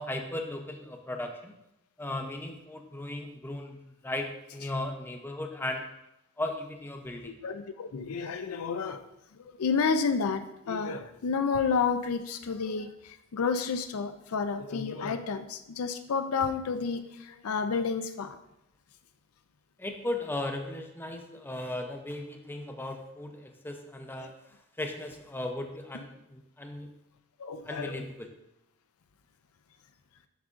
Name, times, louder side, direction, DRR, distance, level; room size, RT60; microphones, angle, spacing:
voice 1, 0.0-1.5 2.0-5.8 6.4-7.4 19.8-24.3 24.8-26.9 27.7-28.3, left 1 dB, 10° left, 4 dB, 0.5 m, -36 dB
voice 2, 7.2-9.0 9.3-18.4 24.2-24.3 27.4-28.0, left 5 dB, 70° left, 9 dB, 0.4 m, -30 dB
8.0 x 6.2 x 2.5 m, 0.85 s
head